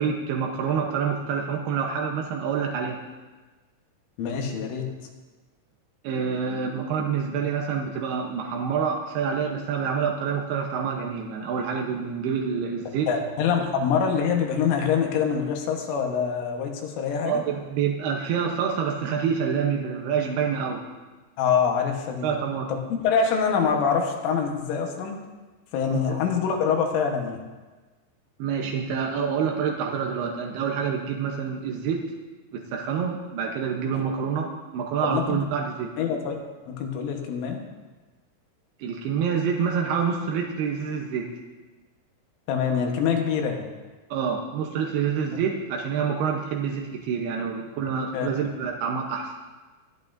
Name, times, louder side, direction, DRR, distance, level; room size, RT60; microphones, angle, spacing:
voice 1, 0.0-3.0 6.0-13.1 17.2-20.8 22.2-22.7 25.9-26.2 28.4-32.0 32.5-35.9 38.8-41.3 44.1-49.3, right 6 dB, 80° right, 0 dB, 2.3 m, -27 dB
voice 2, 4.2-4.9 13.1-17.4 21.4-22.4 22.7-22.8 23.0-25.2 25.7-27.4 35.0-35.4 36.0-36.4 36.7-37.6 42.5-43.7 45.3-45.4 48.1-48.3, left 6 dB, 75° left, 2 dB, 3.6 m, -25 dB
20.0 x 11.0 x 2.6 m, 1.3 s
omnidirectional pair, 5.8 m